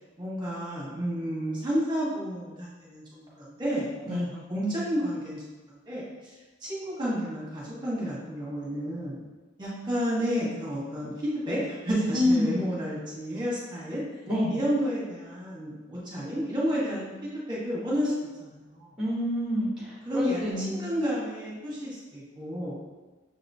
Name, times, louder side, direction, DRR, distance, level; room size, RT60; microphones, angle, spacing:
voice 1, 0.2-4.2 4.5-6.3 6.6-9.2 9.6-14.0 14.5-18.1 18.4-18.9 20.0-22.8, equal, 25° right, -7 dB, 1.2 m, -31 dB
voice 2, 12.0-12.5 14.3-14.5 19.0-20.8, left 1 dB, 5° right, -7 dB, 1.1 m, -27 dB
6.6 x 3.0 x 2.7 m, 1.2 s
head